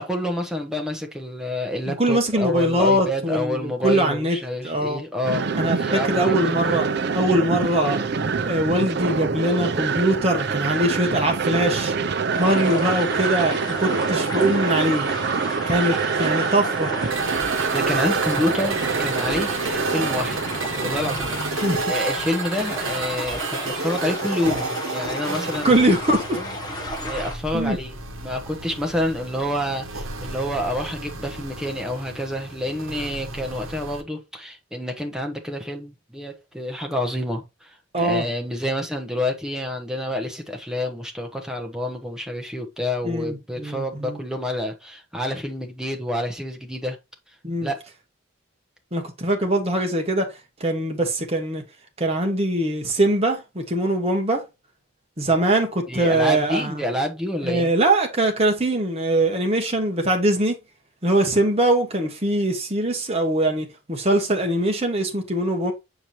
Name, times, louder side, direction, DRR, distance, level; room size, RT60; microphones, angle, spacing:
voice 1, 0.0-6.9 15.9-16.0 17.7-20.4 20.8-25.8 26.3-26.4 27.0-47.0 47.6-47.8 55.9-57.7, left 1 dB, 5° right, 1.0 m, -28 dB
voice 2, 1.9-4.4 4.6-5.0 5.5-6.8 7.1-8.0 8.4-11.9 12.3-15.1 15.7-16.9 21.6-21.8 25.6-26.4 27.5-27.8 37.9-38.2 43.0-44.2 47.4-47.7 48.9-50.3 50.6-51.6 52.0-54.4 55.2-56.8 57.4-60.6 61.0-65.7, right 1 dB, 30° right, 1.4 m, -22 dB
sound 1, 5.2-21.6, right 5 dB, 50° right, 0.5 m, -26 dB
sound 2, 12.3-27.3, left 1 dB, 20° left, 1.3 m, -33 dB
sound 3, 17.1-34.0, right 3 dB, 75° right, 1.2 m, -31 dB
7.1 x 4.8 x 2.9 m
head